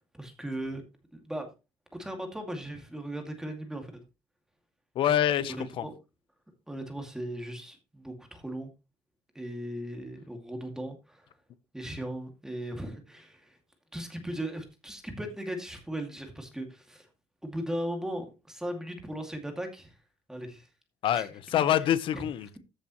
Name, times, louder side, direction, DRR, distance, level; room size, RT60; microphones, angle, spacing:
voice 1, 0.2-0.8 1.1-1.5 1.9-3.9 5.8-5.9 6.7-8.7 9.3-11.3 11.7-13.6 13.9-17.1 17.4-19.9 20.3-20.7 21.1-21.3 21.7-21.8 22.1-22.2, right 1 dB, 5° right, 2.2 m, -37 dB
voice 2, 4.9-5.9 21.0-22.6, left 11 dB, 55° left, 1.0 m, -26 dB
14.5 x 7.2 x 3.1 m
cardioid pair, 155°, 10 cm